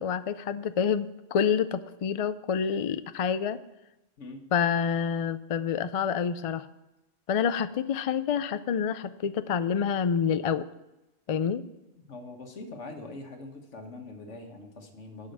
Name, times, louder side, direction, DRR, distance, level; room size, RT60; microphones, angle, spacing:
voice 1, 0.0-3.6 4.5-6.7 7.3-10.6 11.3-11.6, left 7 dB, 55° left, 13 dB, 0.4 m, -27 dB
voice 2, 12.1-15.3, left 2 dB, 85° left, 4 dB, 1.6 m, -43 dB
9.7 x 5.6 x 7.8 m, 0.97 s
omnidirectional pair, 1.2 m